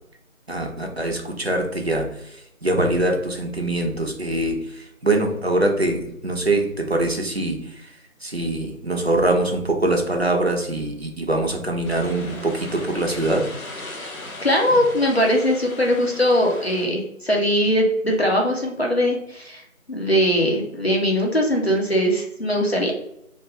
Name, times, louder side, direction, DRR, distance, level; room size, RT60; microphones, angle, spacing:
voice 1, 0.5-13.5 14.7-14.8, right 2 dB, 50° right, 2 dB, 0.5 m, -23 dB
sound 1, 11.8-16.9, left 2 dB, 85° left, 0.9 m, -38 dB
voice 2, 14.4-19.6 19.9-22.9, equal, 50° left, 0 dB, 0.6 m, -20 dB
2.4 x 2.2 x 3.0 m, 0.79 s
figure-of-eight pair, 180°, 41 cm